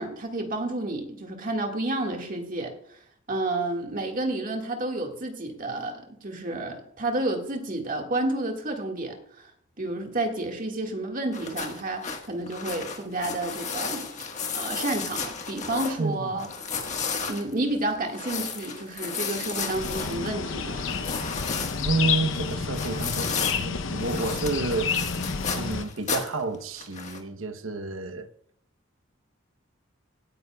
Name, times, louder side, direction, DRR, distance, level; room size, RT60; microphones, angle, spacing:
voice 1, 0.0-3.0 3.3-9.5 9.8-14.1 14.5-16.5 17.3-20.9, right 2 dB, 40° right, 1.8 m, -30 dB
sound 1, 11.3-16.0 16.4-23.6 24.0-26.4 26.8-27.2, left 5 dB, 35° left, 1.5 m, -33 dB
voice 2, 16.0-16.4 21.8-25.2 25.6-28.3, right 3 dB, 80° right, 0.9 m, -30 dB
sound 2, 19.7-25.8, left 5 dB, 65° left, 0.7 m, -30 dB
18.0 x 9.7 x 2.3 m
head